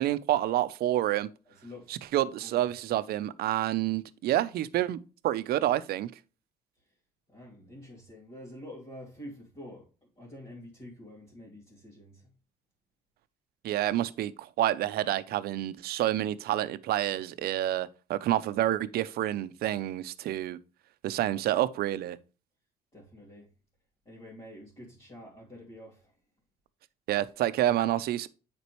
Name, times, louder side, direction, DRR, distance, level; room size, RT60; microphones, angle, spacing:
voice 1, 0.0-1.3 2.1-5.0 5.2-6.1 13.6-20.6 21.0-22.2 27.1-28.3, right 13 dB, 65° right, 0.6 m, -28 dB
voice 2, 1.4-2.0 2.4-2.6 2.9-3.1 6.8-6.9 7.3-12.3 22.9-23.5 24.0-26.1, left 1 dB, 30° left, 2.8 m, -48 dB
8.2 x 5.2 x 3.1 m
cardioid pair, 110°, 17 cm